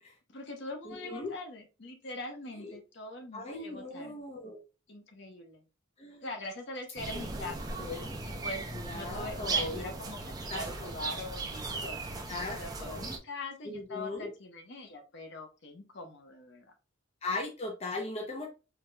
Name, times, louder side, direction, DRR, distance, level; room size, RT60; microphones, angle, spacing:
voice 1, 0.3-4.2 4.9-5.6 6.2-7.8 8.2-16.7, left 2 dB, 60° left, 4 dB, 0.9 m, -43 dB
voice 2, 0.8-1.3 2.6-2.8 3.3-4.6 6.0-6.3 7.4-7.5 7.8-8.1 8.7-9.9 10.5-10.6 12.3-13.1 13.7-14.3 17.2-18.5, left 2 dB, 30° left, 1 dB, 0.7 m, -38 dB
sound 1, 7.0-13.2, right 3 dB, 20° right, 0.6 m, -37 dB
4.7 x 2.9 x 2.2 m, 0.30 s
head